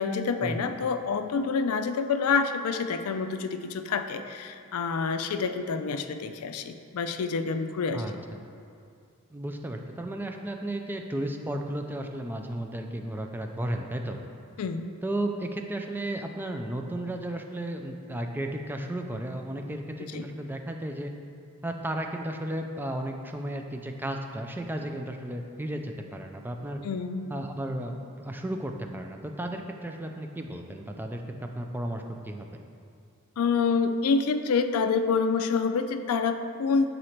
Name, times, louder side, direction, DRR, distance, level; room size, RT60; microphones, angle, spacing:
voice 1, 0.0-8.0 14.6-14.8 20.0-20.2 26.8-27.3 33.4-36.9, left 5 dB, 85° left, 8 dB, 0.4 m, -27 dB
voice 2, 7.9-8.4 9.3-14.2 15.0-21.1 21.6-26.8 27.3-31.2 31.5-32.5, right 1 dB, 10° right, 3 dB, 0.3 m, -34 dB
6.4 x 4.0 x 4.4 m, 2.4 s
head